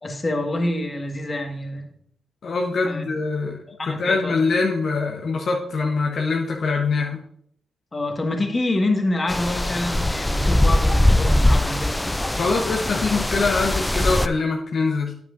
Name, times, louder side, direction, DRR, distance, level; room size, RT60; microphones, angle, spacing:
voice 1, 0.0-1.9 2.9-3.0 3.8-4.3 7.9-12.0, left 2 dB, 35° left, 3 dB, 1.6 m, -26 dB
voice 2, 2.4-3.6 3.9-7.2 12.3-15.1, left 4 dB, 60° left, 0 dB, 1.0 m, -23 dB
sound 1, 9.3-14.3, left 1 dB, 15° left, 0.4 m, -21 dB
9.3 x 8.2 x 2.6 m, 0.66 s
hypercardioid pair, 40°, 0 cm